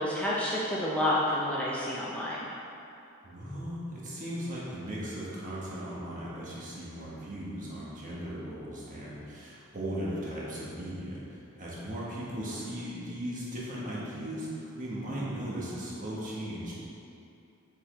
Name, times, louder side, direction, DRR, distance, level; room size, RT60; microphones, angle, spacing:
voice 1, 0.0-2.5, left 1 dB, 5° left, -7 dB, 0.6 m, -29 dB
voice 2, 3.2-16.7, equal, 40° right, -7 dB, 1.4 m, -37 dB
6.8 x 5.0 x 3.4 m, 2.7 s
head